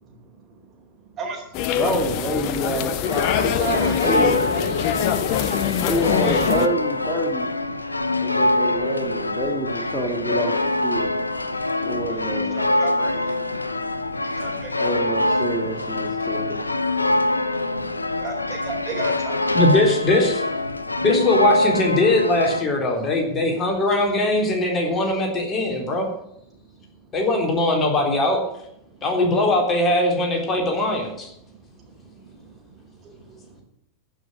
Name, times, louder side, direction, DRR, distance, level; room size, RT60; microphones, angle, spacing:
voice 1, 0.0-1.8 3.4-4.1 11.4-13.4 14.0-14.9 17.7-19.6 20.9-21.0 26.7-27.1 28.8-29.0 31.4-33.6, right 4 dB, 30° right, 1 dB, 4.1 m, -37 dB
sound 1, 1.5-6.7, left 10 dB, 45° left, 0.9 m, -23 dB
voice 2, 1.8-4.4 5.9-7.5 8.2-10.5 10.8-11.1 11.8-12.6 14.8-16.6, right 1 dB, ahead, -3 dB, 2.5 m, -27 dB
sound 2, 3.0-22.6, left 2 dB, 80° left, 0.8 m, -24 dB
voice 3, 19.5-20.4 21.0-26.1 27.1-28.4 29.0-31.3, left 2 dB, 25° left, 1 dB, 3.6 m, -20 dB
15.0 x 6.5 x 9.7 m, 0.75 s
figure-of-eight pair, 90°, 0 cm